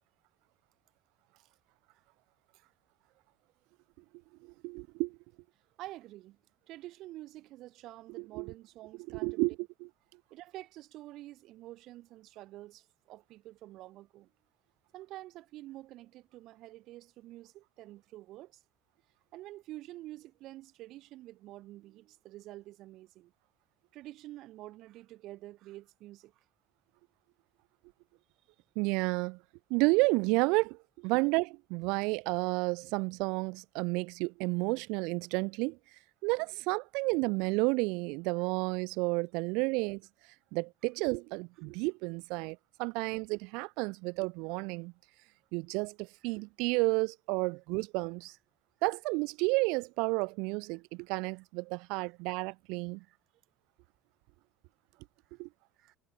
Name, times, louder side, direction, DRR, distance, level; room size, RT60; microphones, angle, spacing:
voice 1, 4.6-5.2 8.2-8.5 9.1-9.5 28.8-29.4 29.7-35.8 36.2-40.0 40.5-44.9 45.5-48.3 48.8-53.0 55.4-55.5, right 28 dB, 70° right, 0.7 m, -31 dB
voice 2, 5.8-6.4 6.7-9.4 10.3-14.3 14.9-18.6 19.3-23.3 23.9-26.4 51.9-52.1 53.1-53.2 55.8-56.0, right 16 dB, 50° right, 3.9 m, -48 dB
cardioid pair, 165°, 0 cm